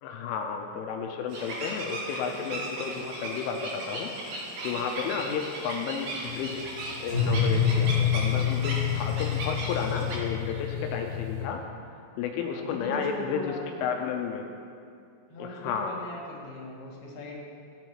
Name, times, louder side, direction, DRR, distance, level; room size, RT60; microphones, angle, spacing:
voice 1, 0.0-4.4 4.6-6.6 7.0-11.6 12.2-13.5 13.8-14.4 15.4-16.0, left 6 dB, 85° left, 3 dB, 2.9 m, -32 dB
sound 1, 1.3-10.2, right 1 dB, 65° right, 2.1 m, -37 dB
sound 2, 6.2-11.4, left 8 dB, 45° right, 2.0 m, -27 dB
voice 2, 12.5-13.7 15.3-17.4, left 1 dB, 65° left, -4 dB, 2.7 m, -39 dB
15.0 x 8.0 x 3.0 m, 2.4 s
omnidirectional pair, 6.0 m